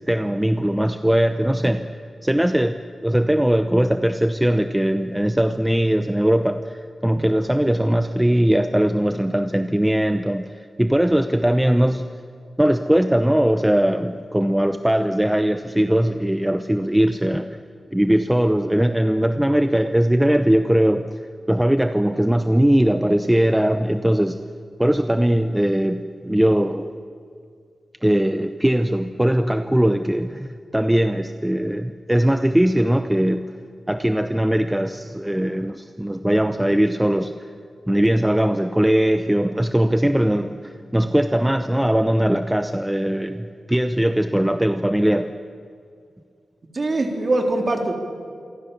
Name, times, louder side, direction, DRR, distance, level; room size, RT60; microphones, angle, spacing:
voice 1, 0.0-1.9 2.2-10.4 10.8-12.1 12.6-17.6 17.9-21.1 21.5-24.4 24.8-26.9 28.0-33.4 33.9-37.3 37.9-45.3, right 1 dB, 5° right, 8 dB, 0.7 m, -20 dB
voice 2, 46.7-47.9, right 2 dB, 35° right, 2 dB, 3.7 m, -22 dB
27.5 x 24.0 x 7.1 m, 2.3 s
wide cardioid pair, 145°, 0 cm